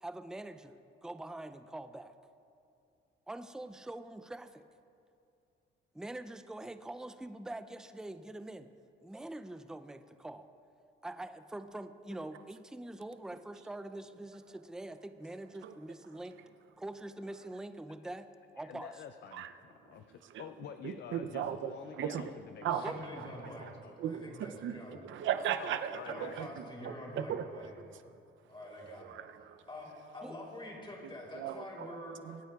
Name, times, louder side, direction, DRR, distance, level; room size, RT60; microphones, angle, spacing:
voice 1, 0.0-2.1 3.3-4.7 5.9-8.7 9.0-10.5 11.0-16.4 16.8-18.9 22.8-23.0 30.2-30.3, right 1 dB, 5° right, 10 dB, 0.4 m, -44 dB
voice 2, 18.6-24.0 25.6-26.4, left 8 dB, 60° left, 8 dB, 0.5 m, -49 dB
voice 3, 20.8-22.2 22.6-23.7 24.0-27.9 28.7-29.6 31.3-31.9 32.2-32.4, right 9 dB, 75° right, 10 dB, 0.6 m, -38 dB
voice 4, 22.7-23.7 24.1-25.0 26.0-27.7 28.5-29.2 29.7-32.2, left 1 dB, 25° left, -2 dB, 3.2 m, -46 dB
25.0 x 9.2 x 2.4 m, 2.5 s
cardioid pair, 90°, 20 cm